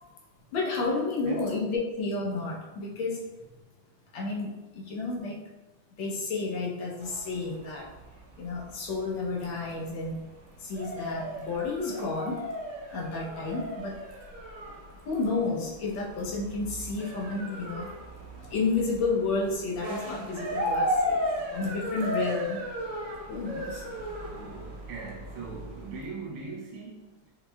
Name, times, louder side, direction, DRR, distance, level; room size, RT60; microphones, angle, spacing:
voice 1, 0.5-3.3 4.1-5.4 6.0-7.9 8.4-10.2 10.6-12.4 12.9-14.0 15.1-17.9 18.5-21.2 21.5-22.7 23.3-23.8, left 3 dB, 70° left, -3 dB, 1.5 m, -31 dB
voice 2, 1.2-1.5 24.2-27.3, right 4 dB, 85° right, -4 dB, 1.6 m, -41 dB
sound 1, 7.0-26.1, equal, 50° right, 1.0 m, -36 dB
5.6 x 3.0 x 2.2 m, 1.1 s
omnidirectional pair, 2.3 m